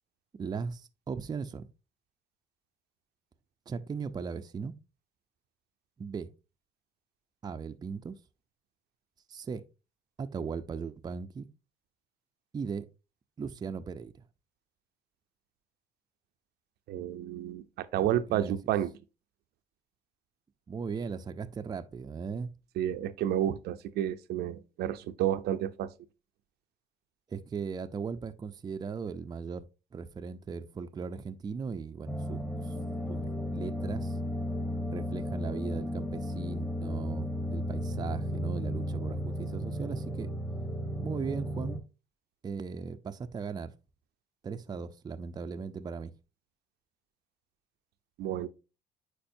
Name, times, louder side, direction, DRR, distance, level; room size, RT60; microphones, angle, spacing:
voice 1, 0.4-1.7 3.7-4.7 6.0-6.3 7.4-8.2 9.3-9.6 10.2-11.5 12.5-12.9 13.4-14.2 18.0-18.6 20.7-22.5 27.3-29.7 29.9-32.7 33.1-34.2 34.9-40.3 41.0-41.8 42.4-43.7 44.4-46.1, right 5 dB, 25° right, 0.5 m, -38 dB
voice 2, 16.9-18.9 22.8-25.9 48.2-48.5, right 11 dB, 75° right, 0.6 m, -31 dB
sound 1, 32.1-41.8, equal, 10° left, 1.1 m, -34 dB
8.7 x 4.7 x 2.6 m
cardioid pair, 110°, 17 cm